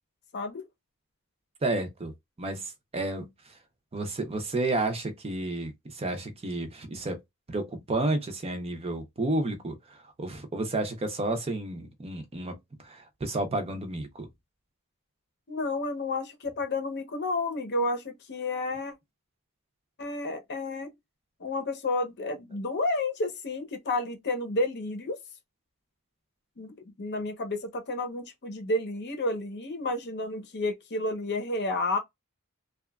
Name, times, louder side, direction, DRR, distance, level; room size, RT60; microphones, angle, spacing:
voice 1, 0.3-0.6 15.5-18.9 20.0-20.9 21.4-25.2 26.6-32.0, left 2 dB, 50° left, 0.7 m, -31 dB
voice 2, 1.6-2.1 2.4-3.3 3.9-7.2 7.5-9.8 10.2-14.3, right 2 dB, 25° right, 0.5 m, -31 dB
2.8 x 2.3 x 2.3 m
head